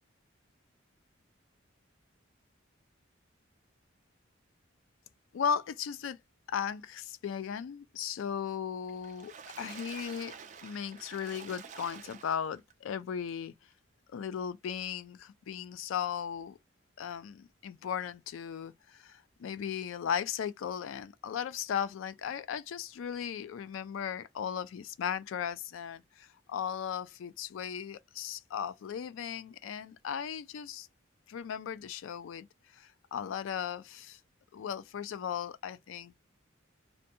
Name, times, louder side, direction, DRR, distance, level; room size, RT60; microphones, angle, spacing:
voice 1, 5.3-6.2 6.5-10.3 10.6-13.5 14.1-16.6 17.0-30.9 31.3-32.5 32.7-34.2 34.5-36.2, left 8 dB, 80° left, 0.3 m, -37 dB
Water / Splash splatter, 8.9-12.7 13.3-13.4 13.7-13.8, right 6 dB, 35° right, 0.4 m, -48 dB
2.6 x 2.2 x 2.6 m
head